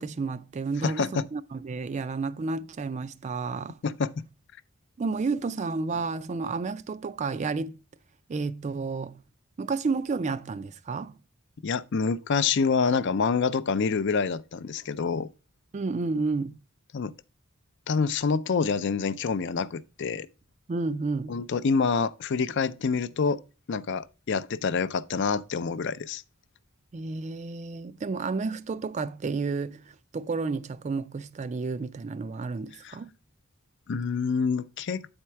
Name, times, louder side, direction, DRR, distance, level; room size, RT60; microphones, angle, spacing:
voice 1, 0.0-3.8 5.0-7.8 8.3-9.2 9.6-11.1 15.7-16.6 20.7-21.4 26.9-33.1, right 4 dB, 35° right, 0.3 m, -31 dB
voice 2, 0.8-1.2 3.8-4.2 11.6-15.3 16.9-17.1 17.9-20.3 21.3-23.4 23.7-26.2 32.8-33.0 33.9-35.1, left 5 dB, 55° left, 0.4 m, -27 dB
8.4 x 4.4 x 4.5 m
head